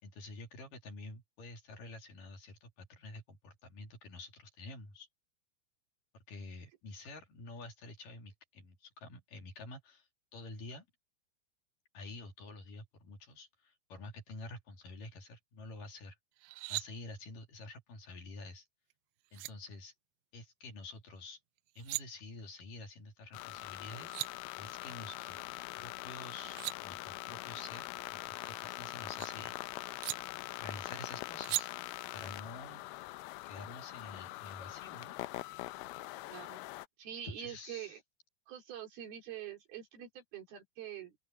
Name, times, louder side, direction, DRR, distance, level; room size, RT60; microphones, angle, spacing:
voice 1, 0.0-5.1 6.3-10.9 11.9-16.2 16.7-18.7 19.3-19.9 20.3-21.4 21.8-25.4 25.8-29.8 30.6-31.7 32.1-32.9 33.4-35.2 37.2-38.0, left 2 dB, 55° left, 4.3 m, -49 dB
sound 1, 16.4-16.9 18.9-19.0 19.3-19.5 21.6-22.0 23.7-23.8 24.0-24.3 26.2-26.8 28.3-29.3 30.0-30.2 31.4-31.6, right 22 dB, 85° right, 2.7 m, -38 dB
sound 2, 23.3-36.9, left 18 dB, 85° left, 2.2 m, -43 dB
voice 2, 36.3-36.7 37.0-38.0 38.5-41.2, right 10 dB, 65° right, 5.2 m, -45 dB
open air
omnidirectional pair, 4.9 m